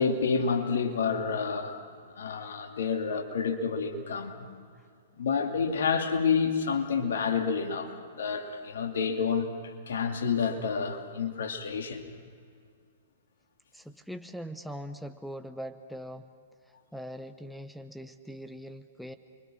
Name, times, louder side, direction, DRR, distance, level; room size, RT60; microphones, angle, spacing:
voice 1, 0.0-1.7 2.2-4.5 5.2-12.1, left 5 dB, 65° left, 2.6 m, -29 dB
voice 2, 13.7-16.3 16.9-19.1, equal, ahead, 0.9 m, -41 dB
29.5 x 24.0 x 6.3 m
figure-of-eight pair, 110°, 0 cm